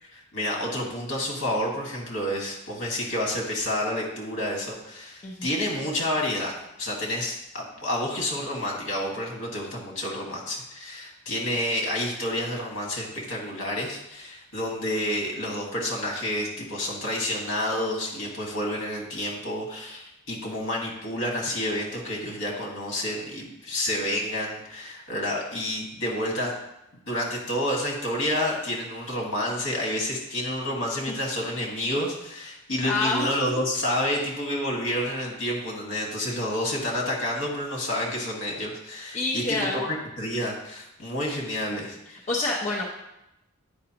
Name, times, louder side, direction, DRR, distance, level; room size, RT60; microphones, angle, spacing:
voice 1, 0.0-6.5 6.8-26.5 27.1-42.2, left 1 dB, 65° left, -1 dB, 1.7 m, -29 dB
voice 2, 5.2-5.6 32.8-33.3 34.0-34.2 39.1-39.8 42.3-42.8, left 2 dB, 35° left, -3 dB, 0.7 m, -27 dB
8.9 x 5.1 x 2.9 m, 0.88 s
head